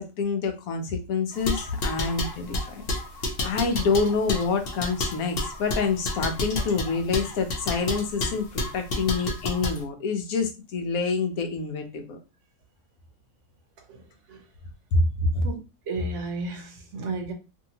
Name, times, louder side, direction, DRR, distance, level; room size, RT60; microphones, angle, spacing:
voice 1, 0.0-2.8 3.4-12.2 14.9-15.5, left 4 dB, 75° left, 1.1 m, -27 dB
sound 1, 1.3-9.8, left 2 dB, 50° left, 0.7 m, -30 dB
voice 2, 13.9-14.4 15.4-15.6 15.9-17.3, right 2 dB, 60° right, 1.0 m, -33 dB
2.8 x 2.7 x 2.7 m
omnidirectional pair, 1.6 m